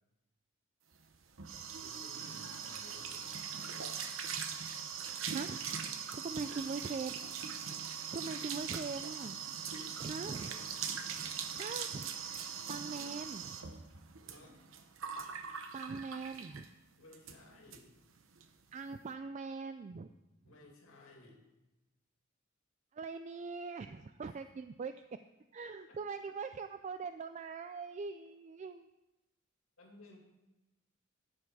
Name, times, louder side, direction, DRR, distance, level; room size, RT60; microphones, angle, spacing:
sound 1, 1.0-16.7 17.1-17.4 17.7-17.8 18.1-18.5, right 7 dB, 70° right, 0.9 m, -41 dB
voice 1, 1.7-3.5 6.3-6.8 7.6-7.8 12.9-13.3 14.3-14.7 17.0-17.9 20.4-21.5 24.2-24.5 25.9-26.3 29.8-30.2, left 2 dB, 80° left, 0 dB, 2.4 m, -58 dB
voice 2, 5.3-5.6 6.1-7.1 8.1-9.4 10.0-10.5 11.5-12.1 12.7-13.4 15.7-16.7 18.7-20.1 22.9-25.0 25.5-28.9, right 4 dB, 35° right, 10 dB, 0.3 m, -41 dB
11.5 x 8.4 x 4.8 m, 1.0 s
head